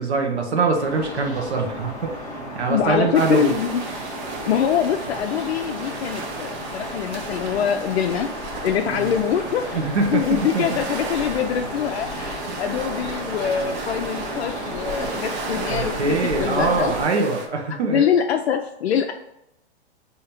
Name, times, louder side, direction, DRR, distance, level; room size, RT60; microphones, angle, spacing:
voice 1, 0.0-3.5 8.9-9.1 9.7-10.8 15.7-18.0, right 4 dB, 85° right, 3 dB, 1.0 m, -23 dB
sound 1, 0.7-17.1, left 1 dB, 10° left, 1.0 m, -34 dB
voice 2, 2.7-3.8 4.5-9.8 10.1-16.9 17.9-19.1, left 8 dB, 70° left, 5 dB, 0.5 m, -24 dB
sound 2, 3.1-17.5, right 4 dB, 45° right, 0.8 m, -34 dB
3.7 x 2.8 x 4.3 m, 0.82 s
hypercardioid pair, 130°, 33 cm